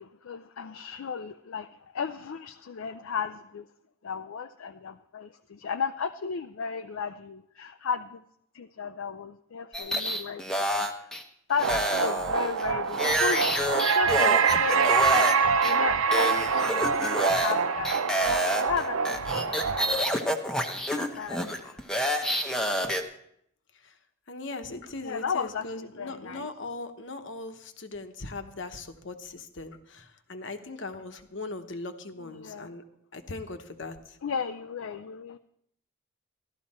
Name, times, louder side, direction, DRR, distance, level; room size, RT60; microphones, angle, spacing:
voice 1, 0.0-1.7 1.9-3.6 4.0-8.2 8.5-10.4 10.8-11.1 11.5-14.8 15.6-20.0 21.2-21.8 25.0-26.5 32.3-32.7 34.2-35.4, left 6 dB, 80° left, 9 dB, 0.5 m, -35 dB
sound 1, 9.7-11.2 11.6-15.3 15.6-15.7 16.1-17.6 17.8-23.0, equal, 5° left, 0.8 m, -28 dB
sound 2, 11.6-20.0, right 5 dB, 80° right, 0.5 m, -25 dB
voice 2, 24.3-32.8 33.1-34.2, left 2 dB, 65° left, 7 dB, 1.1 m, -39 dB
14.5 x 12.5 x 4.3 m, 0.73 s
head